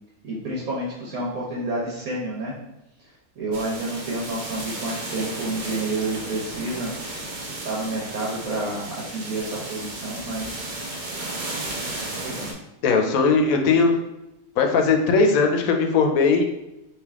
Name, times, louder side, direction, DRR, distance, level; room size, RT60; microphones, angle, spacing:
voice 1, 0.2-2.5 3.4-6.9 7.6-10.6 12.2-12.5, right 2 dB, 80° right, -5 dB, 1.3 m, -29 dB
sound 1, 3.5-12.5, right 2 dB, 50° right, 0.6 m, -34 dB
voice 2, 12.8-13.9 14.6-16.5, left 4 dB, 85° left, 4 dB, 1.0 m, -19 dB
3.4 x 2.8 x 3.5 m, 0.93 s
omnidirectional pair, 1.4 m